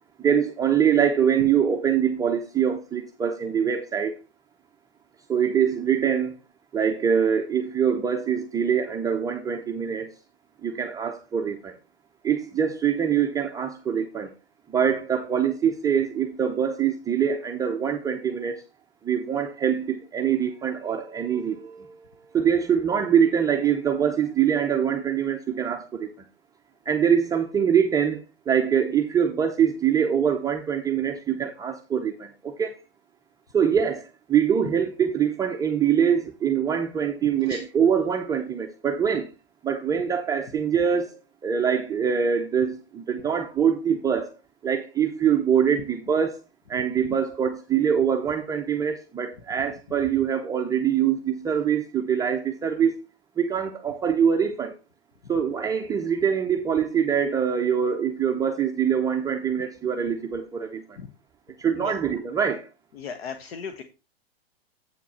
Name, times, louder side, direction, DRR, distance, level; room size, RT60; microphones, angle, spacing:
voice 1, 0.2-4.1 5.3-6.3 6.7-10.1 10.6-11.7 12.2-14.3 14.7-18.5 19.0-21.9 22.3-26.1 26.9-28.2 28.5-32.7 33.5-39.3 39.6-41.2 41.4-44.3 44.6-46.4 46.7-52.9 53.4-54.7 55.3-60.8 61.6-62.7, right 8 dB, 10° right, 0.5 m, -24 dB
voice 2, 62.9-63.8, left 6 dB, 75° left, 1.1 m, -36 dB
7.9 x 6.0 x 4.1 m
hypercardioid pair, 135°, 31 cm